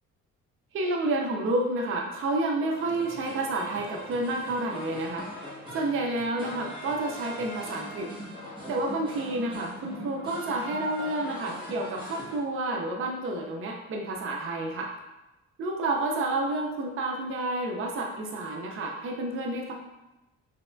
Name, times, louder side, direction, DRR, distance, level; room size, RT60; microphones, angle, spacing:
voice 1, 0.7-8.1 8.7-14.9 15.6-19.7, right 2 dB, 45° right, 1 dB, 0.5 m, -30 dB
sound 1, 2.7-12.4, equal, 15° right, 1.3 m, -41 dB
3.4 x 3.1 x 2.4 m, 0.99 s
cardioid pair, 90°, 30 cm